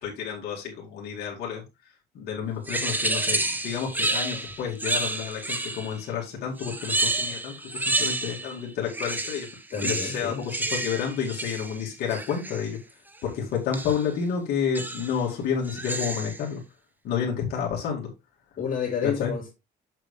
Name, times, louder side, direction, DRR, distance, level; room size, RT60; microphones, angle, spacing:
voice 1, 0.0-1.6 2.1-9.5 9.8-12.8 13.2-16.6 17.0-18.1 19.0-19.3, left 7 dB, 70° left, 2.5 m, -30 dB
sound 1, 2.7-6.0 6.6-8.6 8.9-12.7 13.7-14.1 14.7-15.2 15.6-16.4, right 2 dB, 10° right, 1.1 m, -30 dB
voice 2, 9.7-10.4 18.6-19.5, left 6 dB, 50° left, 3.5 m, -30 dB
7.4 x 6.7 x 3.3 m
cardioid pair, 110°, 17 cm